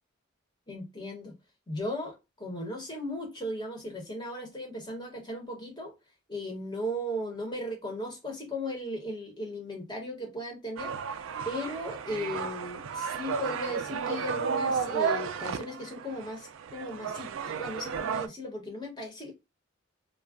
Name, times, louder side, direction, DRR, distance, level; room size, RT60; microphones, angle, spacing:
voice 1, 0.7-1.3 1.7-5.9 6.3-10.9 11.4-19.3, equal, 20° left, 1.0 m, -37 dB
sound 1, 10.8-18.3, right 6 dB, 70° right, 0.3 m, -33 dB
2.3 x 2.2 x 3.5 m
head